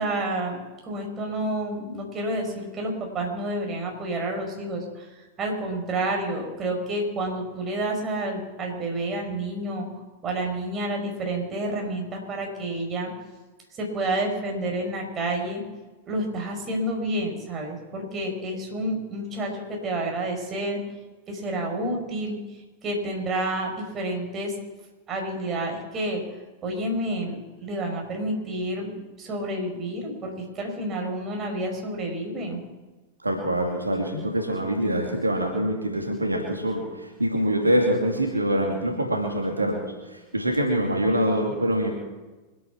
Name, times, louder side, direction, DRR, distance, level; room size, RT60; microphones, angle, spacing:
voice 1, 0.0-9.9 10.2-13.1 13.7-15.6 16.1-20.8 21.3-22.4 22.8-24.5 25.1-26.2 26.6-32.6, right 1 dB, 25° right, 1 dB, 5.3 m, -29 dB
voice 2, 33.2-39.8 40.1-41.9, right 1 dB, 80° right, 1 dB, 2.5 m, -25 dB
25.0 x 9.6 x 6.0 m, 1.2 s
figure-of-eight pair, 90°, 0 cm